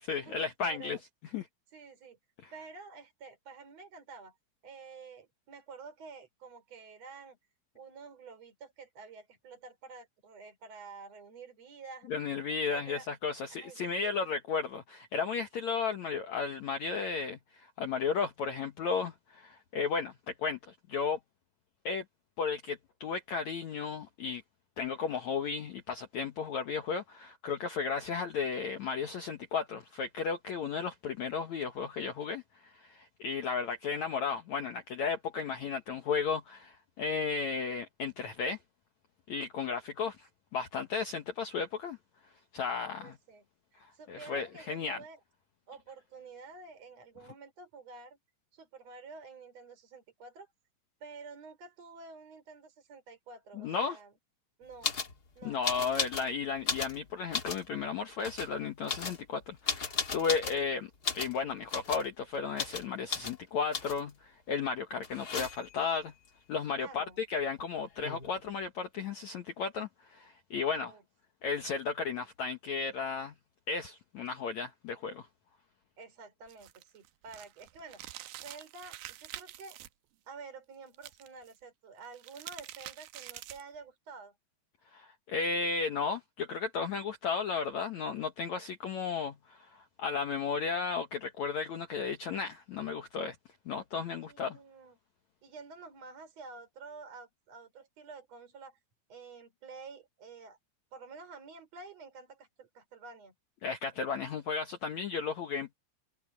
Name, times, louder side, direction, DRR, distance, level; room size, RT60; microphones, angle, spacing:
voice 1, 0.0-1.0 1.3-1.4 2.4-2.5 12.1-21.2 21.8-22.0 22.4-24.4 24.8-38.6 39.3-42.0 42.5-43.2 44.1-45.0 53.6-54.0 55.4-66.1 66.5-70.9 71.4-73.3 73.7-75.3 84.9-93.3 93.6-94.6 103.6-105.7, left 5 dB, 80° left, 1.6 m, -34 dB
voice 2, 0.6-1.0 1.7-2.2 2.5-4.4 4.6-7.4 7.7-12.1 12.5-13.1 13.5-14.2 43.0-43.4 43.7-45.2 45.7-48.2 48.5-50.5 51.0-54.1 54.6-55.0 55.3-55.7 66.8-67.2 70.6-71.0 76.0-78.0 78.3-79.8 80.3-84.4 94.2-95.0 95.4-98.8 99.1-100.6 100.9-103.3, right 4 dB, 35° right, 6.1 m, -50 dB
sound 1, 54.8-55.1 55.6-56.3 56.6-57.7 58.2-58.5 58.9-60.6 61.0-61.4 61.7-62.1 62.6-62.8 63.1-63.4 63.7-64.1 65.0-65.8 67.6-67.7 67.9-68.5, left 5 dB, 45° left, 1.2 m, -35 dB
sound 2, 76.5-79.9 80.9-81.5 82.0-83.8, right 15 dB, 85° right, 2.1 m, -47 dB
omnidirectional pair, 5.3 m